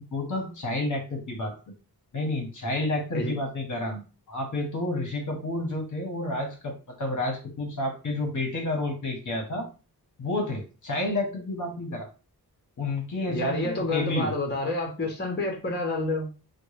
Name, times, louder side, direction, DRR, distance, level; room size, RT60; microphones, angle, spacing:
voice 1, 0.1-1.6 2.1-4.0 4.3-9.7 10.2-12.1 12.8-14.3, left 2 dB, 50° left, 1.0 m, -30 dB
voice 2, 13.3-16.3, left 2 dB, 25° left, 0.9 m, -28 dB
3.6 x 2.2 x 3.2 m
wide cardioid pair, 140°, 39 cm